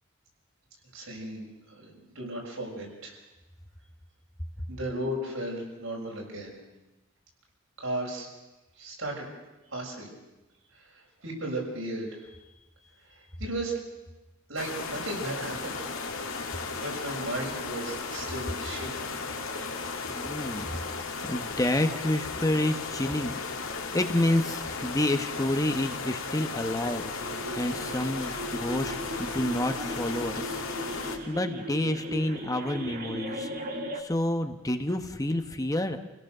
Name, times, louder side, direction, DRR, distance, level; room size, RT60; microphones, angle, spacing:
voice 1, 0.9-1.5 1.8-3.1 4.7-6.6 7.8-8.3 8.8-9.2 9.7-10.1 10.7-12.3 13.1-13.8 14.5-15.8 16.8-19.1, right 1 dB, 80° right, -1 dB, 6.7 m, -35 dB
sound 1, 14.6-31.2, left 4 dB, 90° left, 2.7 m, -35 dB
voice 2, 19.9-20.8 21.2-23.4 23.9-30.9 31.3-33.5 33.9-36.0, left 1 dB, 15° left, 7 dB, 1.0 m, -29 dB
sound 2, 27.2-34.0, equal, 40° right, 2.0 m, -37 dB
28.0 x 17.0 x 6.7 m, 1.0 s
head